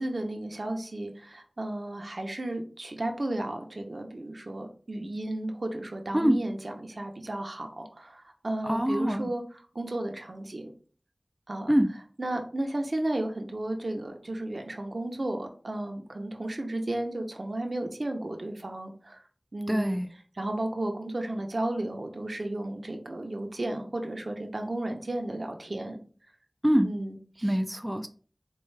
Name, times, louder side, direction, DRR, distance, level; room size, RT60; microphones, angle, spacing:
voice 1, 0.0-9.4 9.7-10.7 11.5-11.7 12.2-19.2 19.5-20.0 20.4-26.0 26.8-27.5, right 1 dB, 65° right, 4 dB, 0.7 m, -33 dB
voice 2, 8.6-9.3 11.7-11.9 19.7-20.1 26.6-26.9 27.4-28.1, equal, 10° right, 5 dB, 0.3 m, -24 dB
4.4 x 2.3 x 3.2 m, 0.43 s
wide cardioid pair, 55°, 0 cm